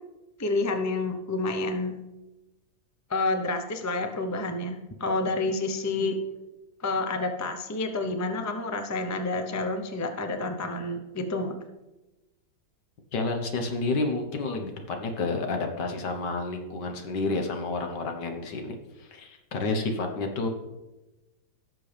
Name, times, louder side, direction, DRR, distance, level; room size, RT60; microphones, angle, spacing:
voice 1, 0.4-2.0 3.1-6.2 6.8-11.5, left 2 dB, 20° left, 6 dB, 0.4 m, -29 dB
voice 2, 13.1-20.5, left 3 dB, 75° left, 4 dB, 1.9 m, -30 dB
17.5 x 6.8 x 3.4 m, 1.0 s
omnidirectional pair, 1.9 m